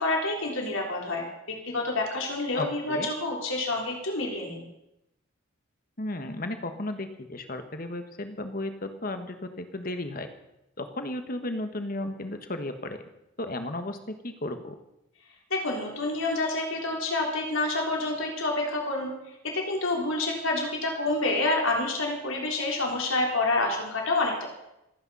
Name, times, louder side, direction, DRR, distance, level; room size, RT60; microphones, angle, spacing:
voice 1, 0.0-4.7 15.5-19.1 19.4-24.5, left 2 dB, 70° left, 0 dB, 3.7 m, -28 dB
voice 2, 2.5-3.1 6.0-10.3 10.8-13.0 13.4-14.7, left 1 dB, 40° left, 8 dB, 1.4 m, -34 dB
26.5 x 9.2 x 5.5 m, 0.87 s
head